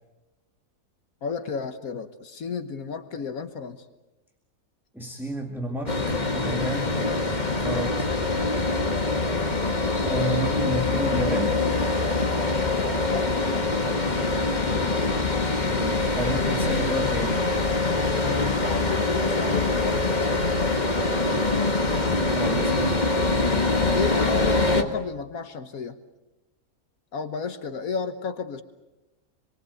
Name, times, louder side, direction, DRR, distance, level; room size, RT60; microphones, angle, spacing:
voice 1, 1.2-3.9 13.0-13.7 18.2-21.6 22.5-23.1 23.9-26.0 27.1-28.6, left 5 dB, 75° left, 9 dB, 1.7 m, -33 dB
voice 2, 4.9-7.0 7.6-8.1 10.0-11.6 15.6-17.4 22.3-23.1, right 1 dB, ahead, 2 dB, 2.0 m, -31 dB
sound 1, 5.9-24.8, left 3 dB, 30° left, 1.9 m, -24 dB
27.0 x 22.5 x 8.0 m, 1.0 s
omnidirectional pair, 1.5 m